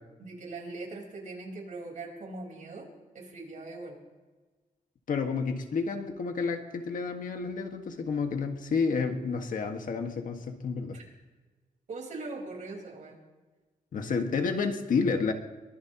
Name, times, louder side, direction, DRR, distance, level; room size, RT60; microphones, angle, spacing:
voice 1, 0.2-2.9 3.1-4.0 10.9-11.0 11.9-13.2, right 3 dB, 60° right, 0 dB, 4.7 m, -41 dB
voice 2, 5.1-11.0 13.9-15.3, left 5 dB, 65° left, 4 dB, 1.7 m, -30 dB
23.0 x 20.0 x 3.0 m, 1.3 s
wide cardioid pair, 125°, 15 cm